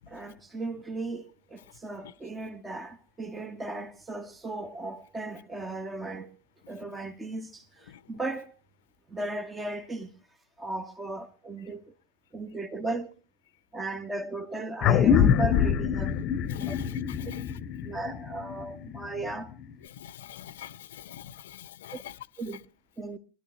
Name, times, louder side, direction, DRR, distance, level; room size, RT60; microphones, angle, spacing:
voice 1, 0.1-6.3 6.7-8.5 9.1-10.1 10.6-11.9 12.3-13.2 13.7-16.2 16.6-16.7 17.8-19.5 21.9-22.0 22.4-22.6 23.0-23.2, right 2 dB, 10° right, 1.3 m, -36 dB
sound 1, 14.8-19.7, left 8 dB, 30° left, 1.1 m, -25 dB
voice 2, 16.5-17.5 19.9-22.1, left 11 dB, 55° left, 0.9 m, -45 dB
23.5 x 12.0 x 3.2 m
figure-of-eight pair, 90°, 0 cm